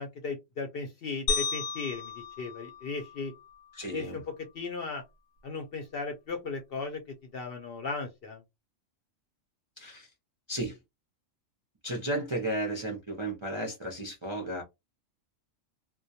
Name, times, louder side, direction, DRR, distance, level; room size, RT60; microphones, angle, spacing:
voice 1, 0.0-3.3 3.9-5.0 5.4-7.0 7.3-8.4, left 4 dB, 60° left, 0.6 m, -36 dB
sound 1, 1.3-3.6, left 5 dB, 80° left, 0.9 m, -34 dB
voice 2, 3.7-4.2 9.8-10.1 10.5-10.8 11.8-14.6, right 1 dB, 40° right, 0.4 m, -34 dB
2.2 x 2.2 x 2.7 m
omnidirectional pair, 1.3 m